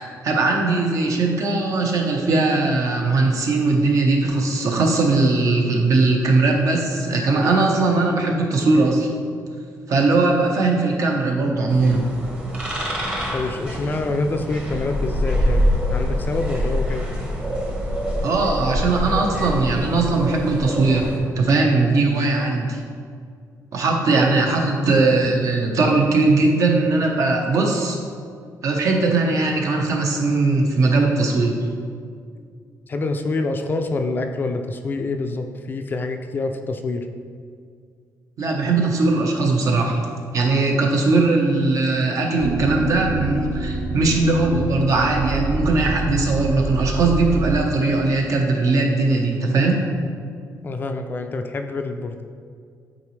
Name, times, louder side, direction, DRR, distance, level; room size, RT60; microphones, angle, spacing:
voice 1, 0.0-9.1 9.9-12.1 18.2-22.8 23.7-28.0 28.6-31.6 38.4-40.0 40.3-49.8, right 3 dB, 55° right, 1 dB, 1.0 m, -19 dB
sound 1, 11.7-21.2, equal, 15° right, 1.0 m, -25 dB
voice 2, 13.3-15.6 15.9-17.1 32.9-37.1 50.6-52.2, left 3 dB, 30° left, 6 dB, 0.3 m, -26 dB
sound 2, 42.4-47.6, right 2 dB, 35° right, 0.5 m, -27 dB
8.7 x 4.1 x 3.2 m, 2.2 s
cardioid pair, 150°, 6 cm